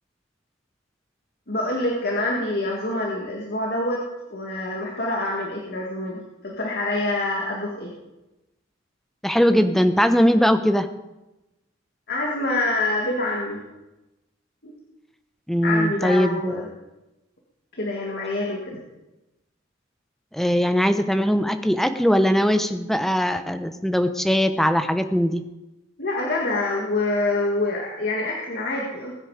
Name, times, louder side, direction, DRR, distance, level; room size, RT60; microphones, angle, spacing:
voice 1, 1.5-4.0 4.3-7.9 12.1-13.6 14.6-14.7 15.6-16.7 17.7-18.8 26.0-29.1, left 2 dB, 55° left, -1 dB, 2.1 m, -26 dB
voice 2, 9.2-10.9 15.5-16.7 20.3-25.4, equal, ahead, 8 dB, 0.7 m, -20 dB
20.5 x 8.9 x 5.0 m, 1.0 s
head